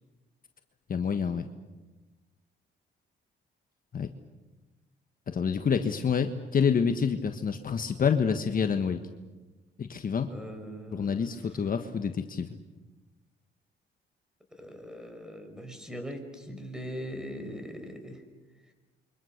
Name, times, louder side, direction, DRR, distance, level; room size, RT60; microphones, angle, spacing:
voice 1, 0.9-1.5 3.9-4.1 5.3-9.0 9.8-10.3 10.9-12.5, left 6 dB, 45° left, 7 dB, 1.4 m, -27 dB
voice 2, 10.3-11.3 14.6-18.2, equal, 5° right, 6 dB, 5.6 m, -40 dB
28.5 x 24.0 x 6.6 m, 1.2 s
cardioid pair, 90°, 20 cm